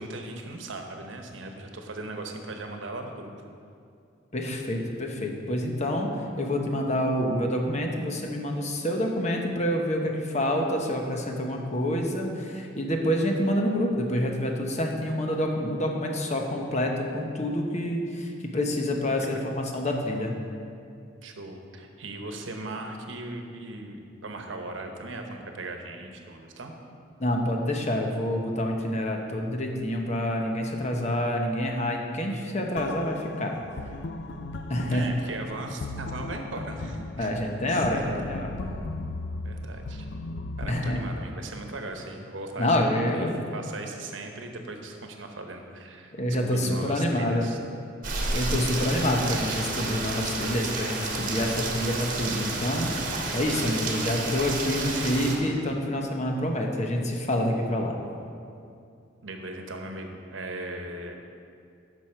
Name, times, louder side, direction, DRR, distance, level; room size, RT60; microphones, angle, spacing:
voice 1, 0.0-3.3 19.3-19.4 21.2-26.7 34.8-37.3 37.7-38.2 39.4-40.1 40.6-43.3 43.5-47.6 59.2-61.2, right 2 dB, 85° right, 4 dB, 1.0 m, -38 dB
voice 2, 4.3-6.1 6.4-20.3 27.2-33.5 34.7-35.1 37.2-38.6 40.7-41.0 42.6-43.4 46.1-47.5 48.3-58.0, left 1 dB, 40° left, 2 dB, 0.9 m, -27 dB
sound 1, 32.8-40.9, left 2 dB, 65° left, 0.5 m, -37 dB
Rain, 48.0-55.4, right 3 dB, 45° right, 1.2 m, -31 dB
11.0 x 6.1 x 4.4 m, 2.4 s
head